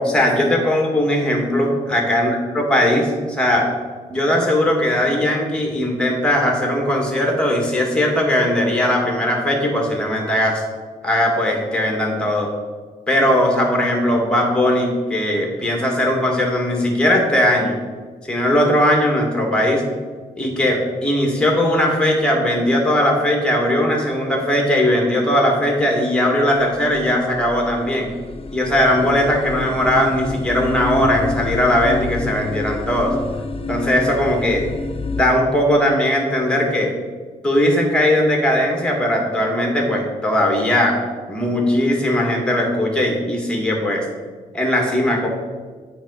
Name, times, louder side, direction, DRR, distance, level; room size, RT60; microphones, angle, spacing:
voice 1, 0.0-3.7 4.1-10.6 11.0-12.5 13.1-17.8 18.3-19.8 20.4-28.1 28.5-33.1 33.7-34.6 35.1-36.9 37.4-41.0 41.3-44.0 44.5-45.3, left 1 dB, 5° left, 0 dB, 1.9 m, -19 dB
sound 1, 26.8-35.2, left 3 dB, 30° left, 0.7 m, -28 dB
7.2 x 4.9 x 4.9 m, 1.5 s
hypercardioid pair, 40°, 18 cm